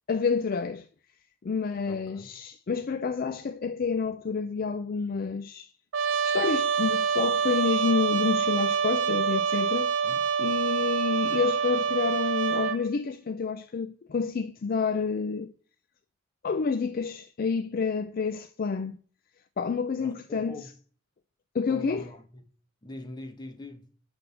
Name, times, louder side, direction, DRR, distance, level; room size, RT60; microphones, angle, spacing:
voice 1, 0.1-0.9 1.4-5.7 6.2-9.9 10.4-15.5 16.4-19.0 19.6-20.7 21.5-22.0, left 5 dB, 50° left, 0.4 m, -29 dB
voice 2, 1.9-2.3 10.0-10.2 20.0-20.7 21.7-22.4 22.8-23.8, left 2 dB, 20° left, 1.3 m, -43 dB
Trumpet, 5.9-12.8, right 6 dB, 85° right, 0.6 m, -26 dB
10.0 x 3.5 x 7.0 m
head